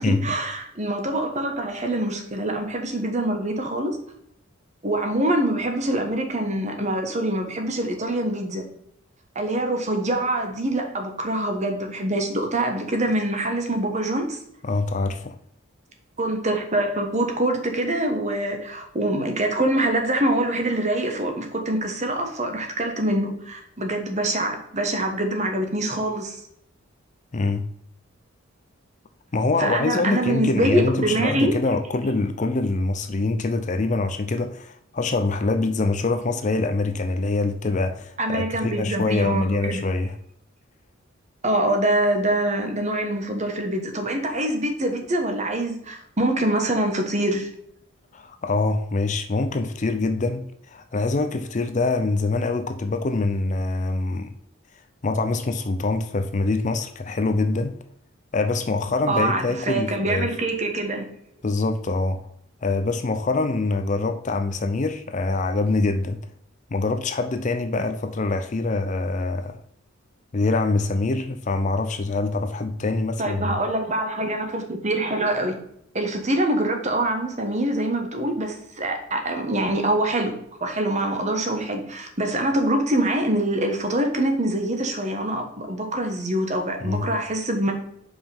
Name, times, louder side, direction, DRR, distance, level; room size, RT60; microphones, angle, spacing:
voice 1, 0.0-4.0 4.8-8.6 9.3-14.4 16.2-26.4 29.6-31.5 38.2-39.8 41.4-47.5 59.1-61.1 73.2-75.6 75.9-80.3 80.6-87.7, right 1 dB, 35° right, 1.2 m, -24 dB
voice 2, 14.6-15.4 27.3-27.7 29.3-40.2 48.1-54.3 55.0-57.7 58.3-60.3 61.4-62.3 62.6-66.2 66.7-69.6 70.3-73.6 86.8-87.1, left 3 dB, 35° left, 0.5 m, -24 dB
5.4 x 5.0 x 5.3 m
head